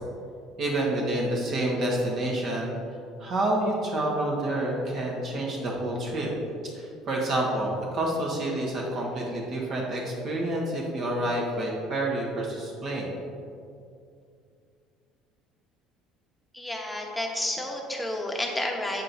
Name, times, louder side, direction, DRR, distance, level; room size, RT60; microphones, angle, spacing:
voice 1, 0.6-2.7 3.2-6.3 6.7-13.1, right 1 dB, 50° right, -2 dB, 1.5 m, -28 dB
voice 2, 16.5-19.0, left 1 dB, 5° left, -1 dB, 1.0 m, -31 dB
7.8 x 5.3 x 2.7 m, 2.4 s
cardioid pair, 110°, 0 cm